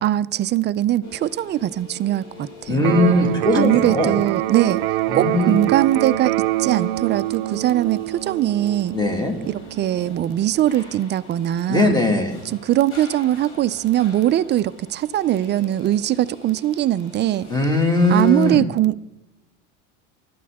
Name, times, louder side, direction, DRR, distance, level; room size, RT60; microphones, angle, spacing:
voice 1, 0.0-2.9 3.5-4.8 5.1-6.3 6.6-9.0 9.5-12.0 12.6-17.5 18.1-19.0, right 13 dB, 35° right, 15 dB, 0.5 m, -21 dB
sound 1, 1.0-18.5, left 2 dB, 45° left, 7.2 m, -44 dB
voice 2, 2.7-4.2 5.1-5.6 8.9-9.4 11.7-12.4 17.5-18.7, left 2 dB, 15° left, 3 dB, 2.4 m, -19 dB
Electric guitar, 2.8-10.8, right 15 dB, 85° right, 0.6 m, -25 dB
21.0 x 12.5 x 3.6 m, 0.96 s
cardioid pair, 130°, 30 cm